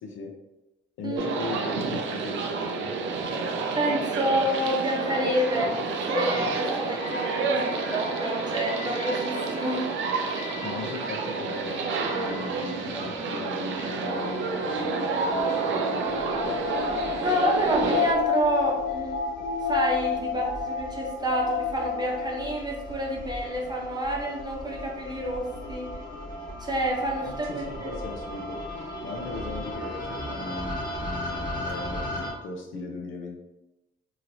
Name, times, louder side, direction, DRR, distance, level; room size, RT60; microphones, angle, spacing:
voice 1, 0.0-0.3 1.0-2.9 10.6-16.6 27.2-28.6 29.0-33.4, left 3 dB, 80° left, 1 dB, 0.7 m, -38 dB
voice 2, 1.0-1.4 3.7-5.8 6.0-9.9 17.2-19.2 19.7-25.9 26.6-28.0, equal, 20° right, -1 dB, 0.8 m, -28 dB
sound 1, 1.2-18.1, right 4 dB, 70° right, 0.5 m, -29 dB
sound 2, 6.3-22.5, left 5 dB, 50° left, 0.8 m, -33 dB
sound 3, 16.1-32.3, left 1 dB, 20° left, 1.2 m, -37 dB
2.9 x 2.8 x 2.7 m, 1.0 s
cardioid pair, 90°, 20 cm